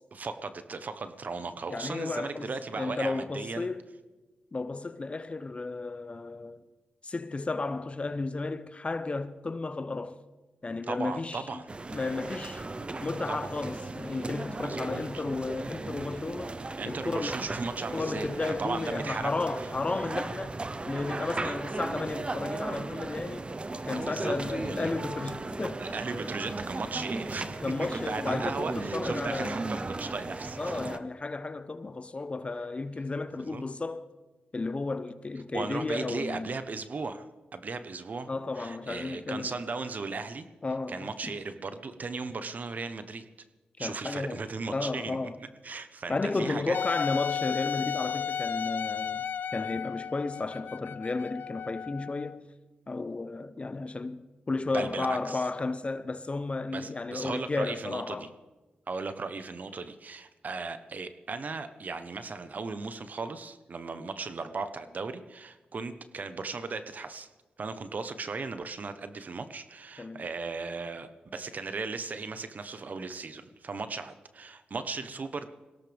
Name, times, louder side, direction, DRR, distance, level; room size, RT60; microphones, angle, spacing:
voice 1, 0.1-3.7 10.9-11.6 13.3-13.4 14.6-15.2 16.8-19.3 19.6-19.7 20.0-20.1 21.4-21.6 23.9-24.9 25.8-30.8 33.4-33.6 35.5-37.2 37.5-38.3 38.5-40.5 40.9-43.2 43.8-45.2 45.6-46.8 54.7-55.4 56.7-58.3 58.9-67.3 67.6-75.5, right 4 dB, 55° right, 1.1 m, -37 dB
voice 2, 1.7-3.8 4.5-6.6 7.0-10.2 10.6-11.6 11.9-12.6 13.0-16.6 16.9-17.4 17.9-20.6 20.9-23.5 23.8-25.9 27.6-29.6 30.6-34.0 34.5-36.5 38.3-39.6 40.6-41.3 43.8-45.4 46.1-49.3 49.5-52.4 52.9-58.3 70.0-70.2, left 3 dB, 35° left, 0.9 m, -33 dB
sound 1, 11.7-31.0, right 2 dB, 35° right, 0.9 m, -36 dB
Wind instrument woodwind instrument, 46.7-52.4, left 8 dB, 70° left, 0.4 m, -34 dB
21.5 x 17.0 x 3.6 m
cardioid pair, 55°, 3 cm